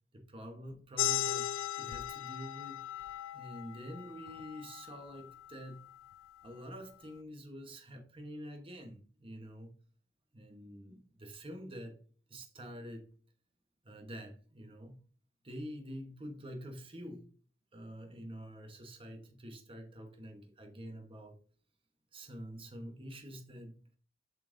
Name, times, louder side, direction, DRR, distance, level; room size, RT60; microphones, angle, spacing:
voice 1, 0.1-1.5 1.8-2.8 3.3-5.8 6.4-9.7 10.3-12.0 12.3-13.1 13.8-15.0 15.4-17.3 17.7-21.4 22.1-23.8, equal, 30° right, 1.1 m, -47 dB
sound 1, 1.0-6.1, left 13 dB, 80° left, 0.3 m, -38 dB
7.2 x 5.6 x 2.6 m
head